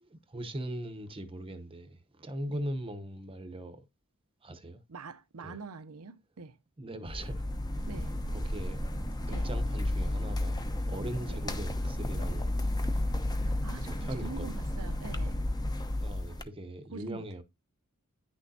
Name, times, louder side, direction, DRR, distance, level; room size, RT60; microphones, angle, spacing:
voice 1, 0.3-3.8 4.4-4.8 5.4-5.6 6.8-7.5 8.3-8.8 9.3-12.6 13.9-14.6 15.9-17.4, right 1 dB, 25° right, 0.9 m, -40 dB
voice 2, 4.9-6.6 7.9-8.1 9.3-9.5 11.3-11.4 13.4-15.4 16.9-17.3, right 4 dB, 85° right, 0.7 m, -45 dB
sound 1, 7.1-16.4, left 1 dB, 20° left, 0.8 m, -32 dB
9.9 x 6.3 x 2.7 m
head